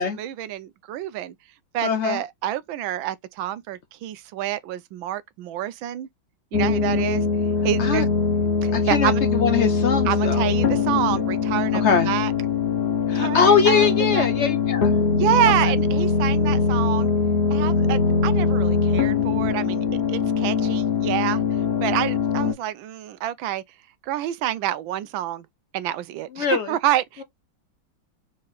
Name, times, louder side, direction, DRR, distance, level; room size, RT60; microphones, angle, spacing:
voice 1, 0.0-1.3 1.7-6.1 6.5-7.2 7.6-8.1 8.6-9.2 10.0-12.3 13.1-14.3 15.2-17.1 17.5-21.4 21.8-23.6 24.0-25.5 25.7-27.2, right 12 dB, 90° right, 1.4 m, -27 dB
voice 2, 1.8-2.2 7.8-8.1 8.7-10.4 11.8-12.1 13.1-15.0 15.6-15.7 26.4-26.7, left 6 dB, 80° left, 0.6 m, -22 dB
sound 1, 6.5-22.5, left 5 dB, 45° left, 0.9 m, -22 dB
4.8 x 4.2 x 2.3 m
omnidirectional pair, 2.1 m